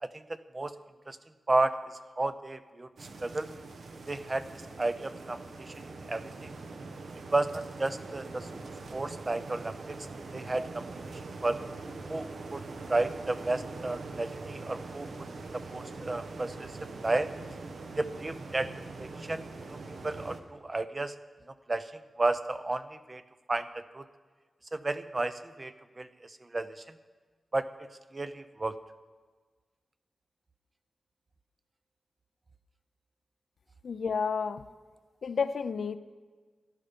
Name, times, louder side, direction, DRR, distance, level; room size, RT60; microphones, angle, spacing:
voice 1, 2.2-2.9 3.2-3.5 4.1-5.7 6.1-6.5 7.3-8.5 8.9-10.0 10.3-10.9 11.4-11.6 12.1-12.6 12.9-15.3 15.5-17.3 18.0-18.7 19.0-19.4 19.7-19.8 20.0-21.1 21.7-21.9 22.2-23.2 23.5-24.0 24.7-26.7 27.5-27.7 28.1-28.8, right 2 dB, 25° right, 11 dB, 0.6 m, -32 dB
sound 1, 3.0-20.4, right 3 dB, 75° right, 1.0 m, -43 dB
voice 2, 33.8-34.6 35.2-36.0, left 5 dB, 75° left, 12 dB, 0.5 m, -30 dB
14.0 x 11.5 x 5.2 m, 1.4 s
wide cardioid pair, 110°, 0 cm